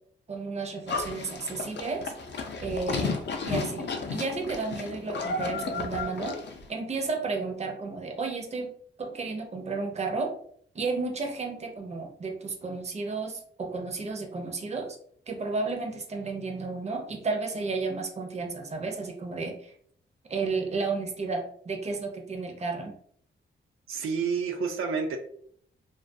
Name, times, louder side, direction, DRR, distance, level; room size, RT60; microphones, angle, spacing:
voice 1, 0.3-2.1 2.6-6.4 6.7-8.7 9.0-10.3 10.7-15.0 15.3-19.7 20.3-22.9, right 4 dB, 30° right, 3 dB, 0.5 m, -32 dB
Livestock farm animals working animals, 0.9-6.6, left 4 dB, 55° left, 0.4 m, -33 dB
voice 2, 23.9-25.2, right 5 dB, 85° right, 4 dB, 0.4 m, -29 dB
2.3 x 2.2 x 2.5 m, 0.62 s
cardioid pair, 100°, 21 cm